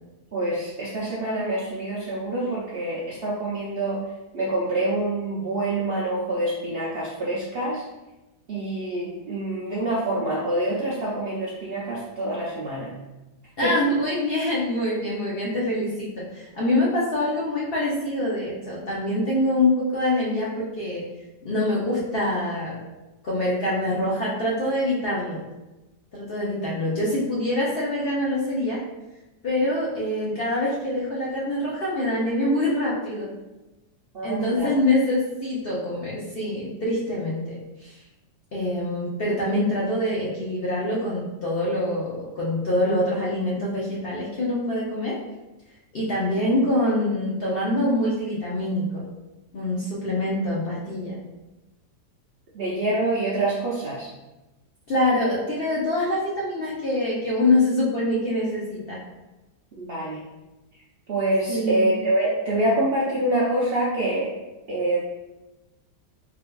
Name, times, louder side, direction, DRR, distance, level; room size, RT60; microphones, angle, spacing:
voice 1, 0.3-4.0 4.3-7.8 8.5-12.9 13.6-13.7 34.1-34.7 46.5-46.6 52.5-54.1 59.8-60.2 61.1-64.3 64.7-65.0, right 1 dB, 75° right, -7 dB, 0.5 m, -26 dB
voice 2, 13.6-21.0 21.4-22.8 23.2-25.5 26.1-28.8 29.4-33.3 34.2-38.0 38.5-45.2 45.9-49.0 49.5-51.2 54.9-59.0 61.5-61.8, left 1 dB, 65° left, -6 dB, 0.5 m, -25 dB
3.3 x 3.2 x 2.2 m, 1.0 s
omnidirectional pair, 1.7 m